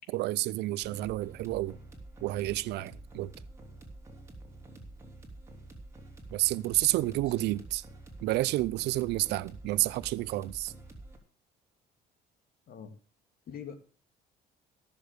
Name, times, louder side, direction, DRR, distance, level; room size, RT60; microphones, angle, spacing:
voice 1, 0.1-1.8 2.2-3.3 6.3-7.8 8.2-10.7, right 17 dB, 80° right, 0.6 m, -30 dB
sound 1, 0.8-11.2, right 2 dB, 15° right, 3.8 m, -48 dB
voice 2, 6.7-7.6 9.2-9.5 12.7-12.9 13.5-13.7, left 7 dB, 60° left, 3.0 m, -46 dB
16.0 x 7.0 x 6.6 m
cardioid pair, 110°, 17 cm